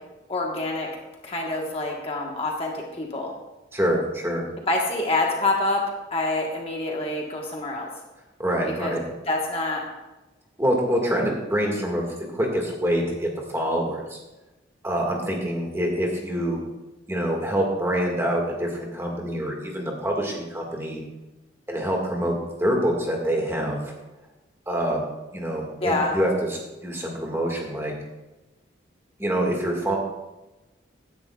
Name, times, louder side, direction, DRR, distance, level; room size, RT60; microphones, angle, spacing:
voice 1, 0.3-0.9 1.2-3.3 4.7-5.8 6.1-7.9 8.6-9.0 9.3-9.8 25.8-26.2, left 2 dB, 30° left, 0 dB, 1.3 m, -26 dB
voice 2, 3.7-4.4 8.4-9.0 10.6-12.1 12.3-14.2 14.8-16.6 17.1-21.0 21.7-22.3 22.6-23.9 24.7-25.0 25.3-27.9 29.2-30.0, equal, 15° right, 0 dB, 1.8 m, -25 dB
16.0 x 10.5 x 2.4 m, 1.0 s
head